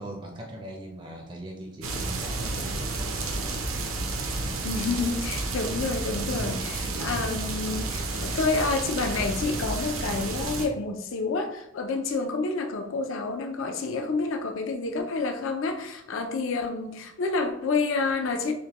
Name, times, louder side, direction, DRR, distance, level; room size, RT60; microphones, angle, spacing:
voice 1, 0.0-2.8, right 1 dB, 20° right, 2 dB, 0.4 m, -40 dB
sound 1, 1.8-10.7, right 3 dB, 85° right, 0.7 m, -31 dB
voice 2, 4.6-18.5, left 3 dB, 70° left, 5 dB, 0.4 m, -29 dB
6.2 x 2.1 x 2.9 m, 0.82 s
head